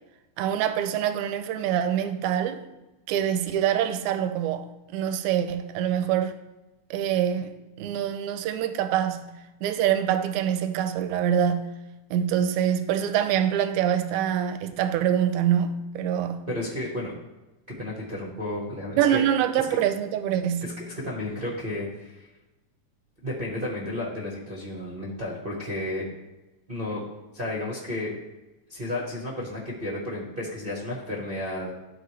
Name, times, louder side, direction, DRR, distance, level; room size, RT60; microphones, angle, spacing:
voice 1, 0.4-2.6 3.1-6.3 6.9-11.8 12.1-16.5 19.0-20.7, right 9 dB, 80° right, 1.9 m, -25 dB
voice 2, 16.5-17.1 17.7-19.3 20.6-22.3 23.2-26.1 26.7-27.0 27.3-28.1 28.7-31.7, left 1 dB, 60° right, 0.5 m, -32 dB
12.5 x 4.2 x 3.3 m
omnidirectional pair, 3.4 m